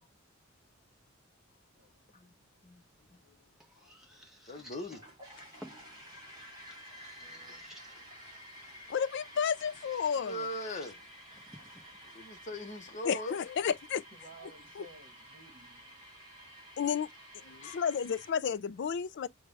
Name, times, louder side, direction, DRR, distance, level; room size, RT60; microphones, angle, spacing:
voice 1, 1.8-2.6 7.2-7.6 14.1-16.0, right 2 dB, 40° right, 1.4 m, -57 dB
sound 1, 2.7-13.7, equal, ahead, 1.0 m, -58 dB
voice 2, 4.5-5.0 7.8-7.9 10.2-11.0 12.1-13.3 17.4-17.8, left 1 dB, 35° left, 0.8 m, -40 dB
sound 2, 4.5-18.3, equal, 20° right, 3.6 m, -52 dB
voice 3, 8.9-10.4 13.0-14.0 16.8-17.1 17.6-19.3, left 7 dB, 55° left, 0.4 m, -31 dB
6.5 x 2.3 x 3.2 m
head